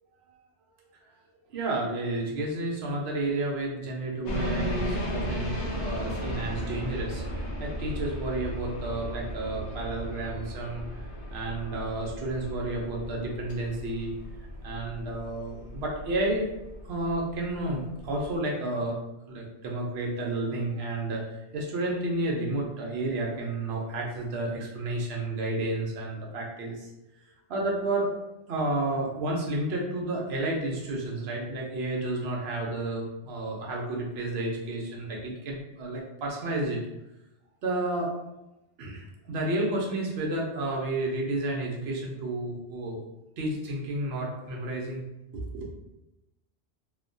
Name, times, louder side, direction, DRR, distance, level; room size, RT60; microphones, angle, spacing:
voice 1, 1.5-14.1 14.6-16.5 16.8-19.0 19.3-26.9 27.5-28.1 28.5-36.8 37.6-38.1 38.8-43.0 43.4-45.0 45.3-45.7, right 2 dB, 75° right, -2 dB, 0.9 m, -31 dB
sound 1, 4.3-18.4, equal, 85° left, 0.9 m, -36 dB
2.9 x 2.1 x 2.5 m, 0.94 s
omnidirectional pair, 1.1 m